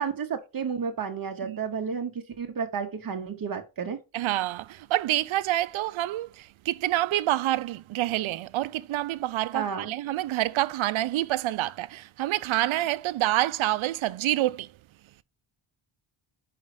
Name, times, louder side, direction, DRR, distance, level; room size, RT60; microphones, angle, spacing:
voice 1, 0.0-4.0 9.5-9.9, right 6 dB, 45° right, 0.9 m, -31 dB
voice 2, 4.1-14.7, right 15 dB, 70° right, 0.5 m, -27 dB
5.5 x 5.0 x 4.8 m
wide cardioid pair, 180°, 50 cm